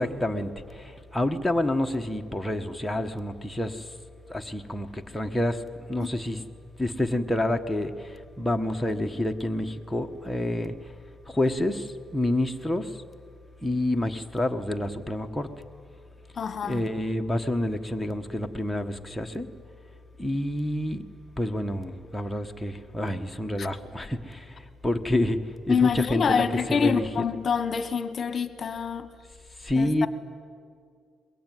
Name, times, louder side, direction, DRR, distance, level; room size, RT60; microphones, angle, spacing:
voice 1, 0.0-3.9 4.3-5.6 5.9-6.4 6.8-10.8 11.3-13.0 13.6-15.5 16.6-19.5 20.2-21.0 21.4-26.4 26.7-27.1 29.6-30.1, left 1 dB, 5° left, 3 dB, 1.3 m, -28 dB
voice 2, 16.3-16.8 23.6-23.7 25.7-29.1 29.8-30.1, left 6 dB, 45° left, 12 dB, 1.3 m, -26 dB
22.5 x 22.0 x 9.3 m, 2.3 s
cardioid pair, 90°, 0 cm